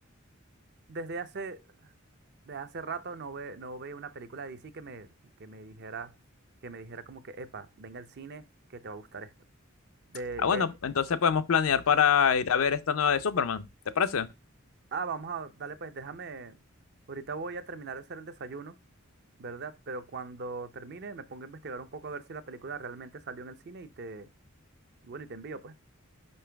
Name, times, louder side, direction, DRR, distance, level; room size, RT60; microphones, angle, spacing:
voice 1, 0.9-1.9 2.5-5.1 5.4-6.1 6.6-9.3 10.1-10.7 14.9-16.5 17.1-18.8 19.4-24.3 25.0-25.7, right 4 dB, 55° right, 0.6 m, -40 dB
voice 2, 10.4-13.6 14.0-14.3, left 7 dB, 85° left, 0.5 m, -25 dB
5.4 x 5.2 x 3.4 m
head